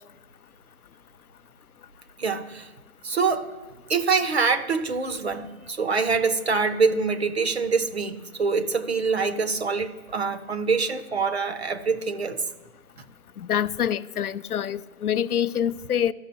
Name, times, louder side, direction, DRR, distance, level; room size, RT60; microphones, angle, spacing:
voice 1, 2.2-2.7 3.0-3.5 3.9-12.4, right 4 dB, 45° right, 0.8 m, -25 dB
voice 2, 13.4-16.1, left 9 dB, 85° left, 0.5 m, -26 dB
14.5 x 6.3 x 2.6 m
figure-of-eight pair, 155°, 43 cm